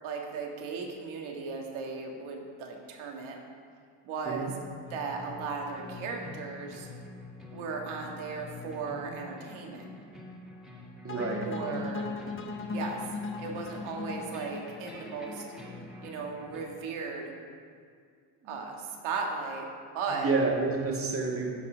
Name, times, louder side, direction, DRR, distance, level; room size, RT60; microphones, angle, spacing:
voice 1, 0.0-3.4 4.0-4.5 4.9-6.9 7.5-9.8 11.5-12.1 12.7-13.0 13.4-15.4 16.0-17.3 18.4-19.7 19.9-20.3, right 4 dB, 75° right, 1 dB, 2.0 m, -36 dB
sound 1, 4.8-16.6, left 2 dB, ahead, 2.2 m, -46 dB
voice 2, 11.0-11.5 18.4-18.5 20.1-21.5, right 3 dB, 25° right, 0 dB, 1.8 m, -29 dB
sound 2, 11.1-16.2, left 4 dB, 25° left, 1.2 m, -38 dB
15.0 x 5.7 x 5.1 m, 2.2 s
cardioid pair, 120°, 48 cm